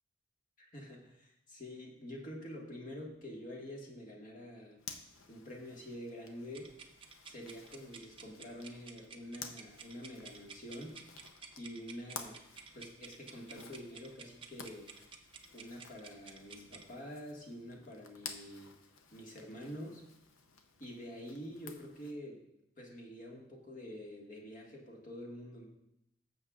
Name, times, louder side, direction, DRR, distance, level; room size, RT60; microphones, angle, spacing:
voice 1, 0.7-4.8 5.3-6.7 7.3-11.0 11.6-12.4 12.7-14.9 15.5-18.7 19.1-20.0 20.8-22.4 22.8-25.6, equal, 40° left, -1 dB, 1.7 m, -47 dB
Zipper (clothing), 4.8-22.1, left 5 dB, 90° left, 0.8 m, -53 dB
sound 1, 6.5-16.9, right 5 dB, 25° right, 0.6 m, -53 dB
16.5 x 7.5 x 2.4 m, 0.81 s
head